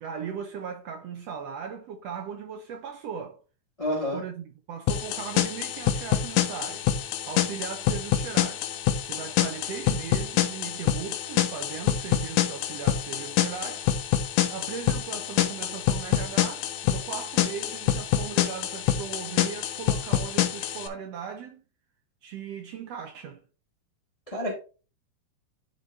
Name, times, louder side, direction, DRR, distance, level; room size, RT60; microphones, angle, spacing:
voice 1, 0.0-3.4 4.1-6.9 7.3-8.7 9.0-13.9 14.5-21.6 22.2-23.4, right 7 dB, 75° right, 1.6 m, -38 dB
voice 2, 3.8-4.2 24.3-24.6, left 1 dB, 35° left, 0.5 m, -29 dB
sound 1, 4.9-20.9, left 11 dB, 80° left, 2.0 m, -26 dB
11.0 x 3.9 x 3.3 m
omnidirectional pair, 3.7 m